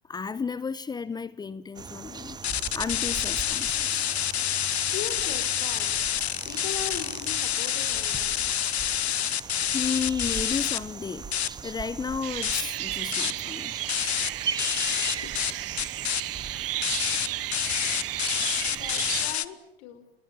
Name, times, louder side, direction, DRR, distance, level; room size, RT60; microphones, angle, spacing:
voice 1, 0.1-2.4 2.7-4.1 9.7-11.3 11.6-13.7, left 5 dB, 15° left, 1.0 m, -33 dB
sound 1, 1.7-19.4, right 5 dB, 15° right, 1.0 m, -39 dB
sound 2, 2.4-10.8 11.3-11.5 12.0-12.1 12.4-12.7 13.1-13.4 13.9-14.3 14.6-15.5 15.8-16.2 16.8-19.4, left 10 dB, 80° left, 1.2 m, -28 dB
voice 2, 4.9-8.4 15.0-15.3 15.7-15.8 17.8-17.9 18.7-20.1, left 9 dB, 50° left, 5.7 m, -40 dB
sound 3, 12.2-19.3, right 16 dB, 60° right, 1.0 m, -34 dB
27.5 x 21.5 x 9.2 m
hypercardioid pair, 110°, 32 cm